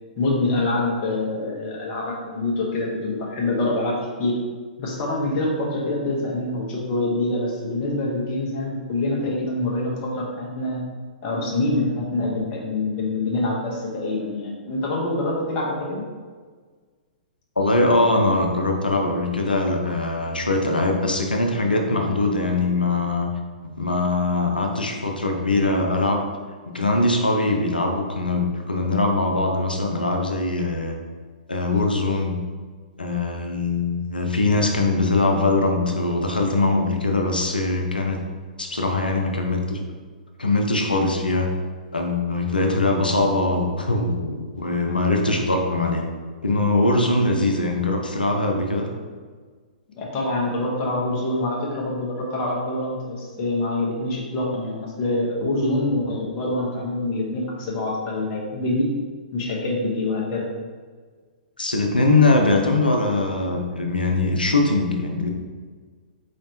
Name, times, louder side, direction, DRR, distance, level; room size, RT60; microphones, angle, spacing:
voice 1, 0.2-4.4 4.8-10.8 11.2-16.0 49.9-58.9 59.3-60.5, left 2 dB, 35° left, -3 dB, 1.1 m, -25 dB
voice 2, 17.6-23.3 23.8-26.2 26.7-31.0 31.5-32.4 33.0-38.2 38.6-39.8 40.4-41.5 41.9-46.0 46.4-48.9 61.6-65.3, left 2 dB, 85° left, 2 dB, 0.6 m, -22 dB
4.1 x 3.2 x 2.8 m, 1.5 s
figure-of-eight pair, 115°, 5 cm